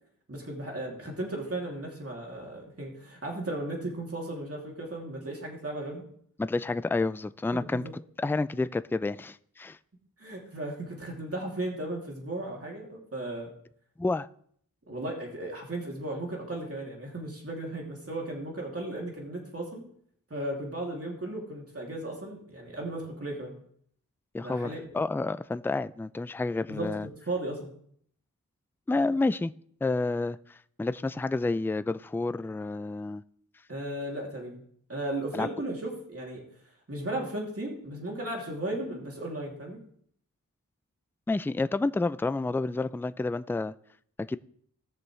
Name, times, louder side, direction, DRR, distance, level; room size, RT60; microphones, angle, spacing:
voice 1, 0.3-6.0 7.5-7.9 10.2-13.5 14.9-19.8 20.3-23.5 24.4-24.9 26.7-26.9 27.3-27.7 33.7-34.6 34.9-36.4 36.9-39.8, right 1 dB, 45° right, -1 dB, 2.8 m, -35 dB
voice 2, 6.4-9.8 14.0-14.3 24.3-27.1 28.9-29.5 29.8-33.2 35.3-35.5 41.3-43.7 44.2-44.4, left 3 dB, 5° left, 15 dB, 0.3 m, -29 dB
18.5 x 6.9 x 3.2 m, 0.64 s
wide cardioid pair, 60°, 33 cm